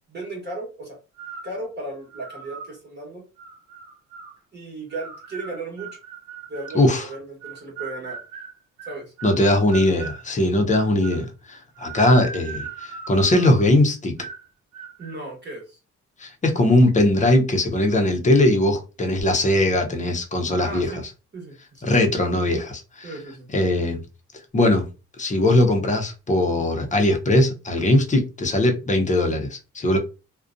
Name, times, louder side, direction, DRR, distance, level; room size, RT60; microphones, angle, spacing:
voice 1, 0.1-1.0 1.4-3.2 4.5-6.0 6.5-8.2 8.9-9.1 15.0-15.8 20.6-21.0 21.3-21.8 23.0-23.5, right 2 dB, 35° right, 1.1 m, -35 dB
sound 1, 1.2-1.6 2.1-2.7 3.4-4.4 4.9-6.8 7.4-10.2 10.7-11.3 11.8-13.7 14.2-14.5 14.7-15.2, right 6 dB, 85° right, 0.7 m, -39 dB
voice 2, 9.2-14.2 16.2-21.0 21.8-23.1 23.5-24.0 24.5-24.9 25.2-30.0, left 1 dB, 25° left, 0.7 m, -20 dB
2.4 x 2.2 x 2.5 m
cardioid pair, 90°, 30 cm